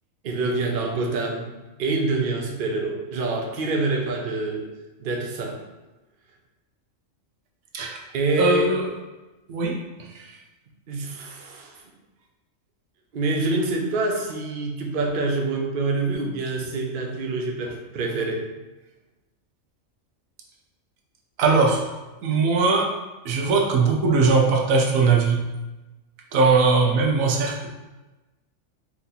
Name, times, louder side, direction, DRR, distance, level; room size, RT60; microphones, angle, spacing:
voice 1, 0.2-1.5 1.8-4.6 5.0-5.6 8.1-8.7 10.9-11.8 13.1-18.4, right 3 dB, 50° right, 1 dB, 0.7 m, -26 dB
voice 2, 8.4-8.9 9.5-9.8 10.1-10.2 21.4-21.8 22.2-22.9 23.2-25.4 26.3-27.7, right 4 dB, 85° right, 1 dB, 1.2 m, -20 dB
4.5 x 2.8 x 3.9 m, 1.1 s
omnidirectional pair, 1.4 m